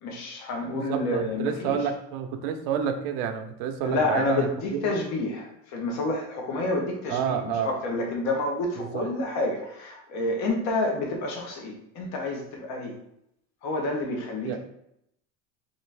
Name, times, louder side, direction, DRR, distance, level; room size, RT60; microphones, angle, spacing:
voice 1, 0.0-1.8 3.8-12.9 13.6-14.6, left 2 dB, 55° left, 1 dB, 0.8 m, -29 dB
voice 2, 0.7-5.0 7.1-7.7 8.8-9.1 14.5-14.6, right 7 dB, 75° right, 6 dB, 0.7 m, -29 dB
3.9 x 2.5 x 3.3 m, 0.77 s
cardioid pair, 145°, 33 cm